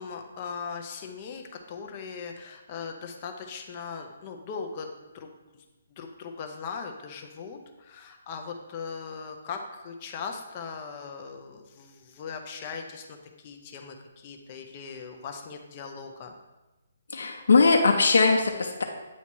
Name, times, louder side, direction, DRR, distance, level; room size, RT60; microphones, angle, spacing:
voice 1, 0.0-5.6 5.9-16.4, left 5 dB, 25° left, 3 dB, 0.5 m, -39 dB
voice 2, 17.1-18.8, left 4 dB, 75° left, 2 dB, 0.6 m, -20 dB
8.3 x 2.9 x 4.4 m, 1.1 s
hypercardioid pair, 170°, 0 cm